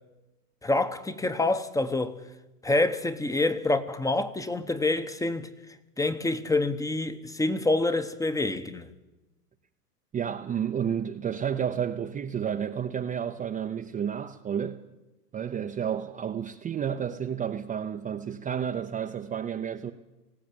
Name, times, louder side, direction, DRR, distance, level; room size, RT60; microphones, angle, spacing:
voice 1, 0.6-2.2 2.6-5.5 6.0-8.9, left 2 dB, 5° left, 0.9 m, -27 dB
voice 2, 10.1-14.8 15.3-19.9, right 8 dB, 15° right, 0.7 m, -31 dB
19.5 x 15.5 x 8.9 m
hypercardioid pair, 115°, 47 cm